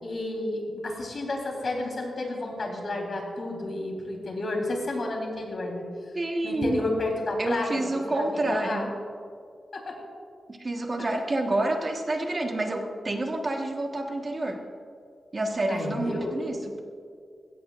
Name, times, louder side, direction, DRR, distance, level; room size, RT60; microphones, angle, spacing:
voice 1, 0.0-5.9 6.4-8.9 9.7-10.0 11.0-11.1 11.5-11.6 15.7-16.3, left 2 dB, 50° left, 0 dB, 3.8 m, -31 dB
voice 2, 6.1-6.8 7.4-8.9 10.5-14.6 15.3-16.8, right 2 dB, 35° right, 2 dB, 1.4 m, -28 dB
20.5 x 17.0 x 2.5 m, 2.4 s
wide cardioid pair, 115°, 0 cm